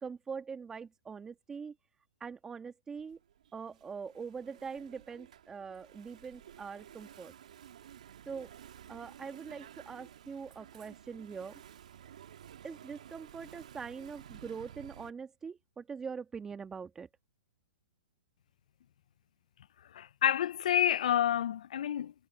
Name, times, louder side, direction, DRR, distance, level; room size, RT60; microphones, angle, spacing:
voice 1, 0.0-1.7 2.2-3.2 3.5-7.3 8.2-8.5 8.9-11.6 12.6-17.1, right 6 dB, 10° right, 1.7 m, -43 dB
Engine / Mechanisms, 3.0-15.1, right 9 dB, 70° right, 2.9 m, -53 dB
voice 2, 19.9-22.1, left 10 dB, 65° left, 0.5 m, -28 dB
hypercardioid pair, 140°, 4 cm